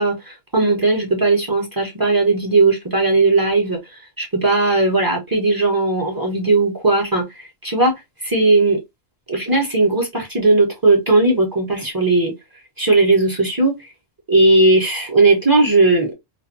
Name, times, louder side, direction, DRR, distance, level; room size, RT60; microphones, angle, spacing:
voice 1, 0.0-7.9 8.2-8.8 9.3-12.3 12.8-13.7 14.3-16.1, right 2 dB, 20° right, 0.8 m, -17 dB
2.5 x 2.5 x 2.6 m
omnidirectional pair, 1.3 m